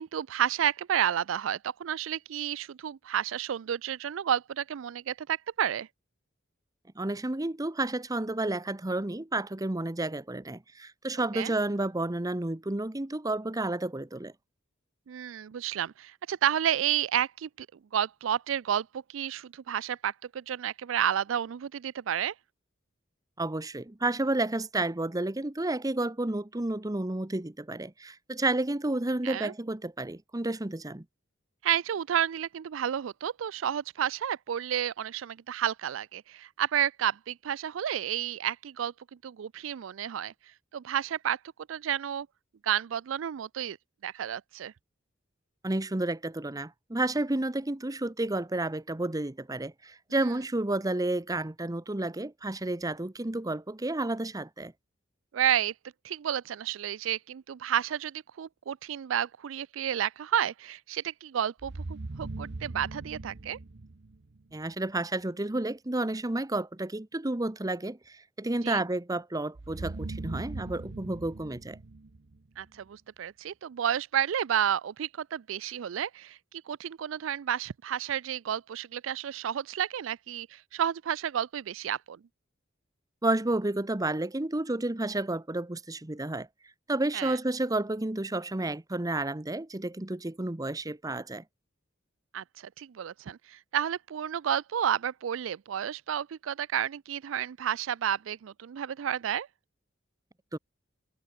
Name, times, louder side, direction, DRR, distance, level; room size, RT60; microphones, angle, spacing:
voice 1, 0.0-5.9 11.3-11.5 15.1-17.7 17.9-22.3 29.2-29.5 31.6-38.9 39.2-40.3 40.7-41.4 41.7-42.3 42.6-43.8 44.0-44.7 55.3-55.7 56.0-63.6 68.6-68.8 72.6-76.4 76.7-82.2 87.1-87.4 92.3-92.4 92.8-99.5, right 9 dB, 75° right, 0.4 m, -31 dB
voice 2, 7.0-14.3 23.4-31.0 45.6-54.7 64.5-71.8 83.2-86.5 86.9-91.4 100.5-100.6, right 2 dB, 20° right, 0.8 m, -31 dB
sound 1, 61.6-64.6 69.6-72.8, right 2 dB, 60° right, 0.8 m, -40 dB
head